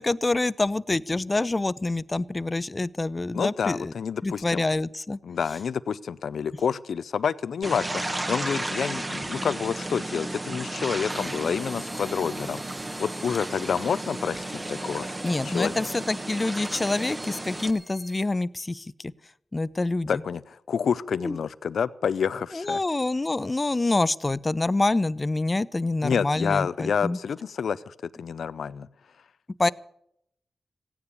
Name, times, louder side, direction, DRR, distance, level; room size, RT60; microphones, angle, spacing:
voice 1, 0.0-3.9 4.2-5.2 15.2-19.1 19.5-20.1 21.2-21.3 22.5-27.2 29.6-29.7, left 2 dB, 30° left, 19 dB, 0.6 m, -26 dB
voice 2, 3.3-4.6 5.2-15.1 15.4-15.9 20.1-22.8 26.0-28.9, left 7 dB, 80° left, 17 dB, 0.5 m, -28 dB
sound 1, 7.6-17.7, right 1 dB, 30° right, 1.6 m, -33 dB
sound 2, 11.1-18.2, equal, ahead, 1.2 m, -48 dB
16.0 x 9.7 x 8.5 m, 0.74 s
cardioid pair, 50°, 0 cm